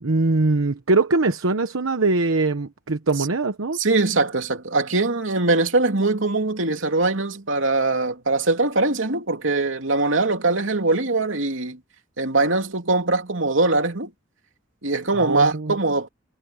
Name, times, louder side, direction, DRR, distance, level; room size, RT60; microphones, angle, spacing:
voice 1, 0.0-3.8 15.1-15.8, right 3 dB, 90° right, 1.1 m, -22 dB
voice 2, 3.7-11.8 12.2-14.1 14.8-16.1, right 3 dB, 70° right, 2.9 m, -22 dB
head